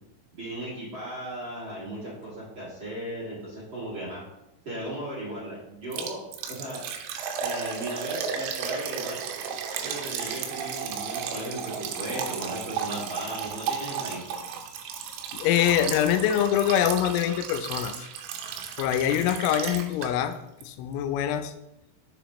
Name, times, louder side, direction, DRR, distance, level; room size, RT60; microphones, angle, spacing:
voice 1, 0.4-4.2 4.6-6.2 6.5-6.8 7.4-9.2 9.8-14.2, right 1 dB, 35° right, -9 dB, 2.2 m, -36 dB
Liquid, 5.9-20.3 20.6-20.7 21.2-21.3, right 7 dB, 85° right, 3.1 m, -34 dB
voice 2, 15.3-18.1 18.8-20.3 20.6-21.5, left 10 dB, 90° left, 8 dB, 3.1 m, -24 dB
7.0 x 6.8 x 3.0 m, 0.88 s
omnidirectional pair, 5.5 m